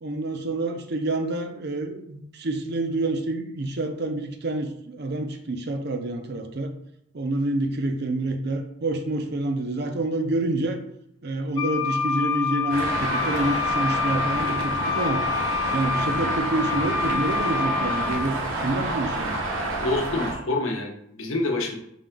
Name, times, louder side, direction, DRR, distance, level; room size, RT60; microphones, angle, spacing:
voice 1, 0.0-6.7 7.1-10.8 11.2-15.2 15.7-19.4, right 2 dB, 50° right, 6 dB, 0.5 m, -28 dB
Wind instrument woodwind instrument, 11.6-18.3, left 6 dB, 20° left, 0.4 m, -27 dB
Traffic noise roadway noise, 12.7-20.3, right 2 dB, 75° right, 1.0 m, -28 dB
voice 2, 19.8-21.8, left 2 dB, 75° left, 1 dB, 0.9 m, -27 dB
5.3 x 2.8 x 3.6 m, 0.76 s
head